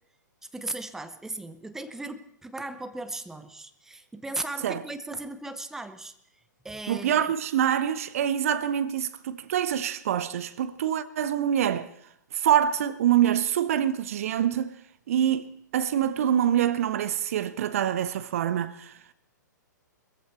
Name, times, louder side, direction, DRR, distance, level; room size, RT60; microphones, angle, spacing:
voice 1, 0.5-6.1 6.6-7.2, right 2 dB, 5° right, 0.7 m, -37 dB
voice 2, 6.9-11.9 12.3-14.7 15.1-15.5 15.7-18.9, right 10 dB, 45° right, 0.7 m, -25 dB
20.5 x 14.5 x 4.2 m
figure-of-eight pair, 110°, 10 cm